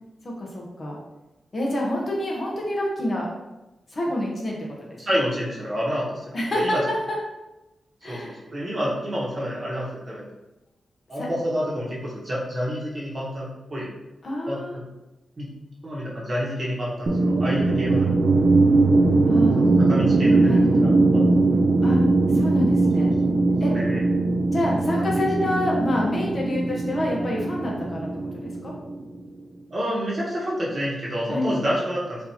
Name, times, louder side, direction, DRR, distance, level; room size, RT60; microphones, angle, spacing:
voice 1, 0.4-1.0 1.5-3.3 3.9-5.0 6.3-7.0 8.0-8.4 11.2-11.3 14.2-14.7 19.3-19.6 20.4-20.9 21.8-22.0 22.3-23.1 23.6-23.7 24.5-28.1 28.4-28.7 31.3-31.6, left 1 dB, 40° left, -2 dB, 0.9 m, -27 dB
voice 2, 5.0-6.2 6.5-6.8 8.1-10.3 11.1-13.9 14.5-14.8 15.4-15.5 15.8-18.4 19.6-21.2 21.5-21.6 23.3-23.4 23.7-24.0 29.7-32.2, equal, 40° right, -6 dB, 1.3 m, -28 dB
sound 1, 17.1-29.2, right 2 dB, 55° right, 0.4 m, -20 dB
4.6 x 2.8 x 2.8 m, 0.99 s
wide cardioid pair, 115°, 0 cm